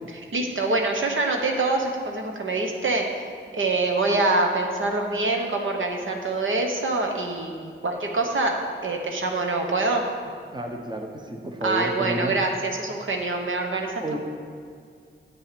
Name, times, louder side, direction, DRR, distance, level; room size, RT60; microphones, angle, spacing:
voice 1, 0.3-3.2 3.5-8.6 8.8-10.0 11.6-14.2, right 2 dB, 70° right, 2 dB, 1.2 m, -25 dB
voice 2, 10.5-12.3 14.0-14.2, right 1 dB, 20° right, 3 dB, 0.9 m, -30 dB
9.1 x 8.0 x 5.2 m, 2.2 s
wide cardioid pair, 90°, 21 cm